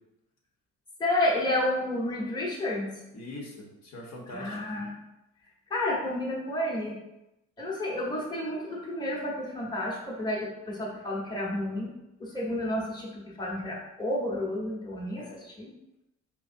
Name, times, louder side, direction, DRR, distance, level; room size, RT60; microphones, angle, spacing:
voice 1, 1.0-2.9 4.3-4.9 5.7-7.0 7.6-11.9 12.2-15.7, left 1 dB, 15° left, -4 dB, 1.1 m, -30 dB
voice 2, 3.1-4.8 15.1-15.4, left 1 dB, 60° left, -1 dB, 1.2 m, -43 dB
4.9 x 3.1 x 2.6 m, 0.93 s
cardioid pair, 90°, 30 cm